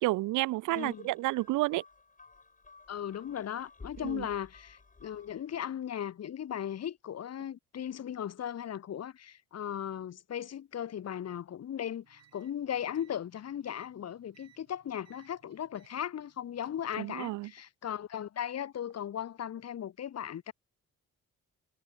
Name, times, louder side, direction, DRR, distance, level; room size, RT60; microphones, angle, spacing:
voice 1, 0.0-1.8 4.0-4.3 17.0-17.5, right 19 dB, 80° right, 0.5 m, -30 dB
voice 2, 0.7-1.1 2.9-20.5, left 9 dB, 55° left, 1.9 m, -37 dB
sound 1, 0.8-5.5, left 4 dB, 25° left, 4.7 m, -55 dB
sound 2, 12.0-17.2, right 9 dB, 60° right, 5.8 m, -65 dB
cardioid pair, 90°, 30 cm